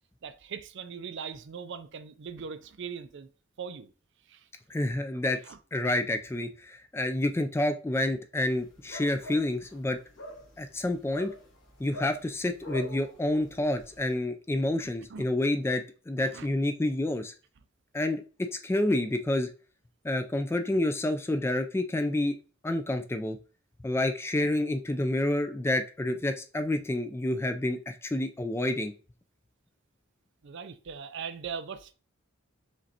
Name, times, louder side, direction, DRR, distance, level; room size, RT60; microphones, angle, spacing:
voice 1, 0.2-3.3 3.6-3.9 4.3-4.5 5.4-5.6 14.8-15.2 16.2-16.5 30.4-31.9, right 6 dB, 60° right, 0.4 m, -40 dB
voice 2, 4.7-5.4 5.7-10.0 10.6-11.3 11.8-17.3 17.9-19.5 20.0-22.4 22.6-23.4 23.8-28.9, left 1 dB, 10° left, 0.3 m, -29 dB
sound 1, 8.5-14.1, equal, 60° left, 1.3 m, -46 dB
5.1 x 3.2 x 2.8 m
head